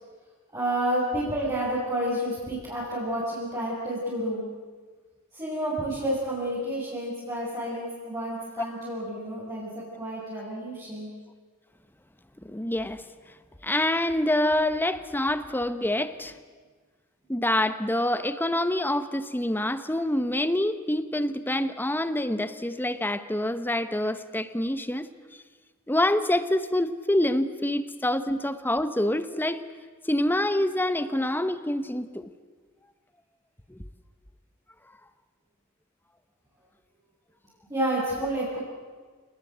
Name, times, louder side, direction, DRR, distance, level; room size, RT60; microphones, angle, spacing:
voice 1, 0.5-4.4 5.3-11.1 37.7-38.6, right 1 dB, 20° right, -9 dB, 7.4 m, -30 dB
voice 2, 12.4-13.0 13.6-16.4 17.3-25.1 25.9-29.6 30.1-32.3 33.7-33.8, left 1 dB, 10° left, 12 dB, 1.0 m, -26 dB
29.0 x 19.5 x 8.1 m, 1.5 s
head